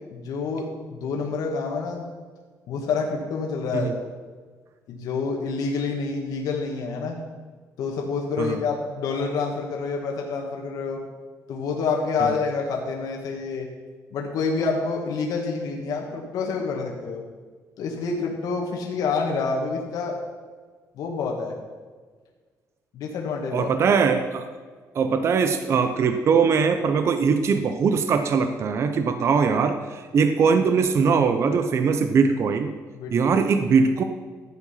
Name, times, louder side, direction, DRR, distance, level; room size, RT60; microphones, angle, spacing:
voice 1, 0.0-2.1 2.7-4.1 4.9-7.2 7.8-11.0 11.5-13.7 14.1-17.2 17.8-20.2 21.0-21.5 22.9-23.7 32.9-33.3, left 4 dB, 75° left, 0 dB, 1.9 m, -28 dB
voice 2, 23.5-24.5 24.9-32.7 33.1-34.0, right 5 dB, 45° right, 8 dB, 0.7 m, -21 dB
13.5 x 9.1 x 5.7 m, 1.5 s
cardioid pair, 155°, 6 cm